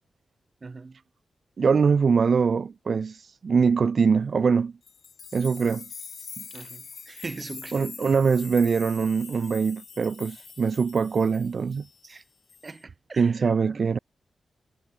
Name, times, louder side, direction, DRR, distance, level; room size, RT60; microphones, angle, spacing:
voice 1, 0.6-1.0 6.5-7.9 12.0-12.2 12.6-13.8, right 3 dB, 35° right, 2.6 m, -41 dB
voice 2, 1.6-4.7 5.3-5.9 6.4-6.5 7.7-11.9 13.2-14.0, right 5 dB, 55° right, 0.3 m, -23 dB
sound 1, 4.8-12.2 12.5-12.8, left 6 dB, 60° left, 0.9 m, -44 dB
wide cardioid pair, 105°, 0 cm